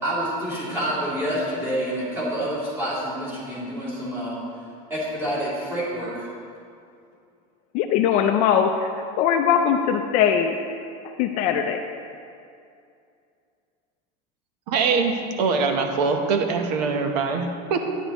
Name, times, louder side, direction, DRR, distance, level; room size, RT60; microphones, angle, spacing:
voice 1, 0.0-4.4 4.9-6.3, equal, 10° right, -9 dB, 2.6 m, -27 dB
voice 2, 7.7-10.6 11.2-11.8, left 8 dB, 35° left, 5 dB, 0.4 m, -21 dB
voice 3, 14.7-18.0, right 4 dB, 85° right, 5 dB, 1.0 m, -23 dB
11.5 x 9.9 x 3.0 m, 2.4 s
cardioid pair, 180°, 20 cm